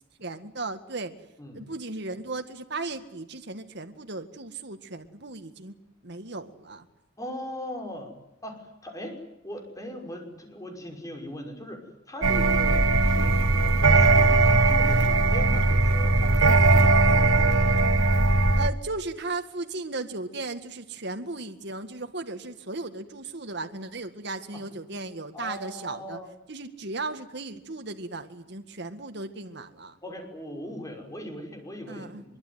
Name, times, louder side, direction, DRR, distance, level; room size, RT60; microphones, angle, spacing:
voice 1, 0.2-1.1 1.5-5.7 6.0-6.9 18.6-26.2 26.5-30.0 31.9-32.2, right 3 dB, 60° right, 6 dB, 1.9 m, -36 dB
voice 2, 7.2-8.1 8.4-18.3 24.5-24.6 25.3-26.3 30.0-32.4, left 1 dB, 15° left, 4 dB, 5.9 m, -40 dB
sound 1, 12.2-18.7, right 3 dB, 90° right, 1.3 m, -19 dB
24.5 x 23.5 x 9.5 m, 0.85 s
head